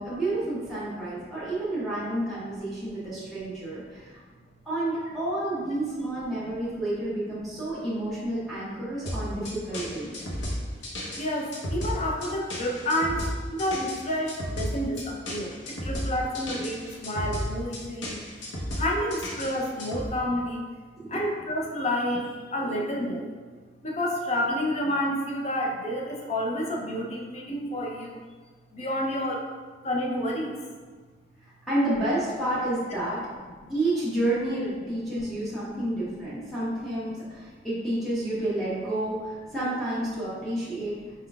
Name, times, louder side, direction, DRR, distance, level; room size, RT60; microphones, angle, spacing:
voice 1, 0.0-4.2 4.6-10.2 21.0-21.2 31.7-33.2 33.7-41.0, right 1 dB, ahead, -11 dB, 0.9 m, -30 dB
sound 1, 9.1-20.1, equal, 90° left, 0.9 m, -33 dB
voice 2, 11.2-20.6 21.1-23.3 23.8-28.2 28.7-29.5 29.8-30.6 33.6-33.7, left 1 dB, 40° left, -1 dB, 0.6 m, -29 dB
4.3 x 3.8 x 2.3 m, 1.5 s
head